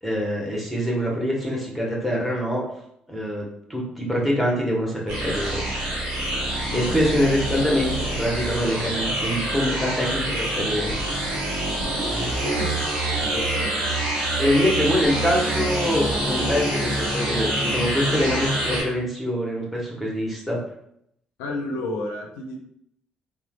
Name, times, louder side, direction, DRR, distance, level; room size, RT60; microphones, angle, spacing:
voice 1, 0.0-2.6 3.1-5.6 6.7-10.9 14.4-20.6, equal, ahead, -3 dB, 1.0 m, -24 dB
sound 1, 5.1-18.8, right 1 dB, 80° right, 0.8 m, -26 dB
voice 2, 6.7-7.0 12.5-12.8 13.2-13.9 21.4-22.6, left 2 dB, 80° left, 2 dB, 0.4 m, -31 dB
3.0 x 2.1 x 2.3 m, 0.73 s
hypercardioid pair, 45°, 4 cm